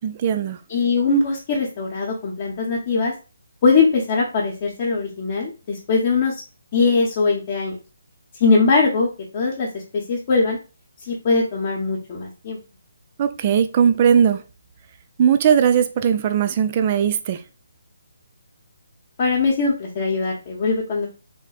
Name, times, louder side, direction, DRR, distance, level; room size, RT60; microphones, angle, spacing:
voice 1, 0.0-0.6 13.2-14.4 15.2-17.4, right 8 dB, 35° right, 0.3 m, -18 dB
voice 2, 0.7-3.1 3.6-6.4 6.7-7.8 8.4-9.1 9.3-10.6 11.1-12.6 19.2-21.1, left 4 dB, 35° left, 0.9 m, -21 dB
3.5 x 2.1 x 4.0 m
figure-of-eight pair, 150°, 0 cm